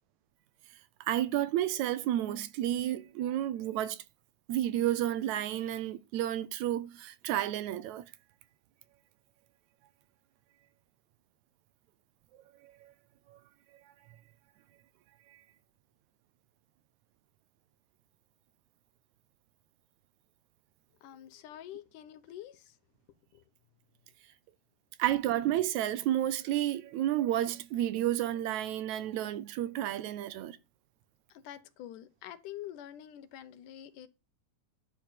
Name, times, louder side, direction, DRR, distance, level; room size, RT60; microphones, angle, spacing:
voice 1, 1.0-4.0 4.5-8.0 12.6-12.9 13.3-13.4 25.0-30.6, right 12 dB, 75° right, 1.9 m, -31 dB
voice 2, 21.0-22.8 23.3-23.4 31.3-34.1, left 12 dB, 90° left, 2.5 m, -46 dB
11.0 x 4.7 x 7.4 m
omnidirectional pair, 3.5 m